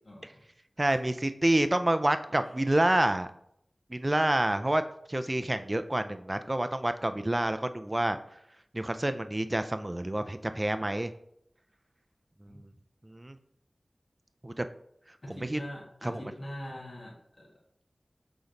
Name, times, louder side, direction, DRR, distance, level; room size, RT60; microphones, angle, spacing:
voice 1, 0.8-3.3 3.9-4.8 5.1-8.2 8.7-11.1 13.1-13.3 14.4-14.7 15.3-15.6 16.0-16.2, right 1 dB, 25° right, 9 dB, 0.4 m, -28 dB
voice 2, 15.2-17.5, equal, 50° left, -2 dB, 1.9 m, -42 dB
6.9 x 4.0 x 3.8 m, 0.72 s
wide cardioid pair, 70°, 0 cm